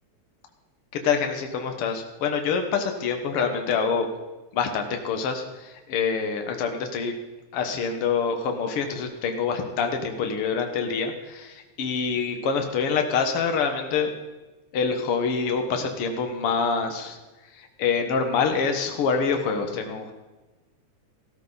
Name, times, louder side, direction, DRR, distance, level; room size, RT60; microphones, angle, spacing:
voice 1, 0.9-4.1 4.5-7.1 7.5-14.1 14.7-17.2 17.6-20.1, left 5 dB, 55° left, 5 dB, 2.0 m, -26 dB
15.0 x 12.5 x 4.1 m, 1.1 s
omnidirectional pair, 3.3 m